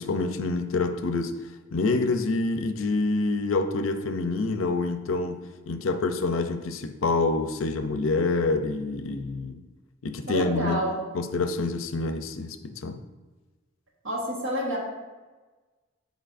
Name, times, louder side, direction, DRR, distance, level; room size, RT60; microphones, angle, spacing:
voice 1, 0.0-1.3 1.7-5.4 5.7-9.6 10.0-10.8 11.1-13.0, left 3 dB, 85° left, 8 dB, 0.5 m, -27 dB
voice 2, 10.3-11.0 14.0-14.8, right 1 dB, 75° right, -2 dB, 1.3 m, -28 dB
9.1 x 4.6 x 2.5 m, 1.2 s
head